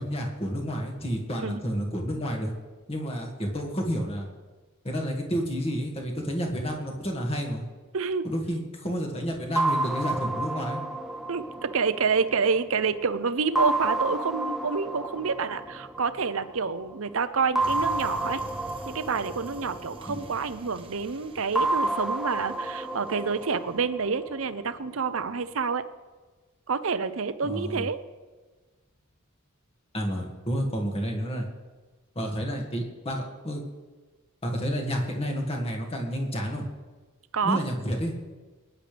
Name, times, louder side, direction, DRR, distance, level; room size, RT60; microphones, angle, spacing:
voice 1, 0.0-2.5 2.9-4.3 4.8-7.6 8.2-10.8 20.1-20.2 27.4-27.9 29.9-31.5 32.2-33.6 34.4-36.7 37.4-38.1, equal, 25° left, 1 dB, 2.0 m, -30 dB
voice 2, 7.9-8.3 11.3-18.4 18.9-25.8 26.7-28.0 37.3-37.6, right 5 dB, 65° right, 12 dB, 0.7 m, -28 dB
sound 1, 9.6-12.9 13.6-16.5 17.6-20.7 21.6-24.7, right 2 dB, ahead, 0.4 m, -30 dB
sound 2, 17.6-23.8, right 1 dB, 25° right, 1.1 m, -47 dB
20.5 x 10.5 x 3.4 m, 1.3 s
head